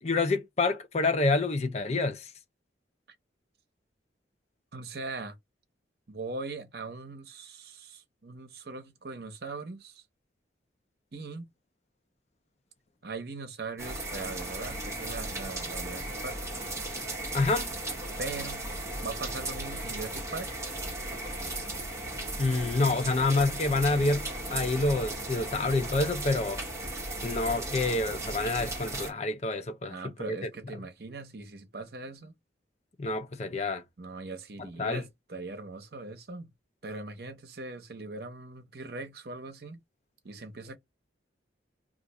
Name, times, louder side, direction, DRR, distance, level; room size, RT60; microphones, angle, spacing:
voice 1, 0.0-2.3 17.3-17.7 22.4-26.6 27.2-30.5 33.0-33.8 34.8-35.0, left 3 dB, 35° left, 0.5 m, -28 dB
voice 2, 4.7-5.4 6.1-10.0 11.1-11.5 13.0-16.4 18.2-18.6 19.0-20.6 29.9-32.3 34.0-36.5 36.8-39.8 40.2-40.8, right 3 dB, 55° right, 0.8 m, -40 dB
sound 1, 13.8-29.1, right 2 dB, 15° right, 1.0 m, -36 dB
2.5 x 2.4 x 4.1 m
head